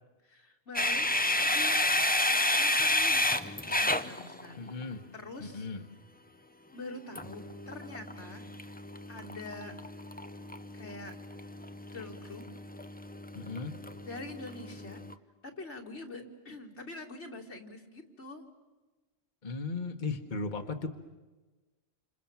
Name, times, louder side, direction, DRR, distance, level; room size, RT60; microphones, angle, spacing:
voice 1, 0.2-1.1 1.3-1.8 2.6-4.7 5.1-5.7 6.7-8.5 9.1-9.8 10.7-11.2 11.9-12.4 14.0-15.0 15.4-18.4, left 2 dB, 85° left, 2 dB, 2.8 m, -45 dB
sound 1, 0.8-4.8 7.2-15.1, left 1 dB, 10° left, 0.7 m, -31 dB
voice 2, 4.6-5.1 5.4-5.8 13.3-13.8 19.4-20.9, left 3 dB, 45° left, 5 dB, 1.4 m, -36 dB
29.0 x 27.5 x 7.3 m, 1.2 s
omnidirectional pair, 1.1 m